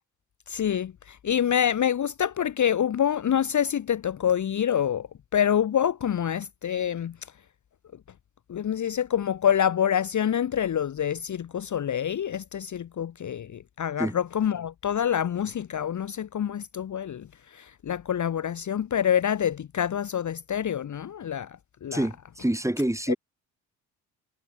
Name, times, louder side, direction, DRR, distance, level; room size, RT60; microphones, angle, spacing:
voice 1, 0.5-7.2 8.5-22.0 23.1-23.2, left 9 dB, 35° left, 1.1 m, -26 dB
voice 2, 21.9-23.2, right 1 dB, 5° right, 2.4 m, -27 dB
hypercardioid pair, 50°, 48 cm